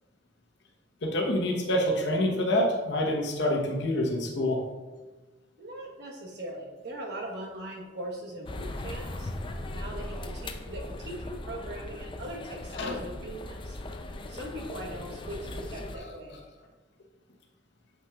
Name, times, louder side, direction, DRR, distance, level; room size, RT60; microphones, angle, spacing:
voice 1, 1.0-4.6 12.7-12.9, left 1 dB, 70° left, 0 dB, 1.0 m, -27 dB
voice 2, 5.6-9.3 9.7-13.8 14.3-16.4, right 1 dB, 65° right, -1 dB, 1.2 m, -40 dB
sound 1, 8.4-16.0, left 1 dB, 25° left, 0.4 m, -39 dB
7.4 x 5.6 x 2.4 m, 1.3 s
head